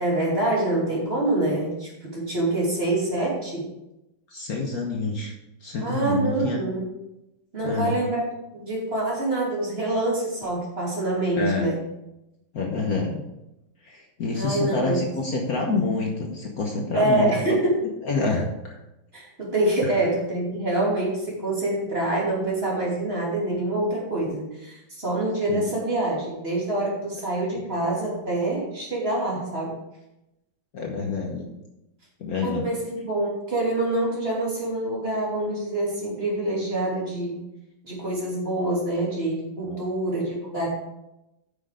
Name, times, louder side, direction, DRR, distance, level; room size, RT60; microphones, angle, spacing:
voice 1, 0.0-3.7 5.8-6.9 7.5-8.3 8.5-11.8 14.3-15.0 16.9-17.7 19.1-29.8 32.4-37.4 37.8-40.7, right 2 dB, 30° right, -4 dB, 2.9 m, -26 dB
voice 2, 4.3-5.3 5.6-6.6 7.6-7.9 11.4-11.7 12.5-13.2 13.8-17.4 18.0-18.8 19.8-19.9 25.5-25.7 30.7-31.4 32.2-32.6 39.7-39.8, left 3 dB, 55° left, 0 dB, 1.4 m, -27 dB
8.9 x 6.3 x 5.0 m, 0.92 s
omnidirectional pair, 2.1 m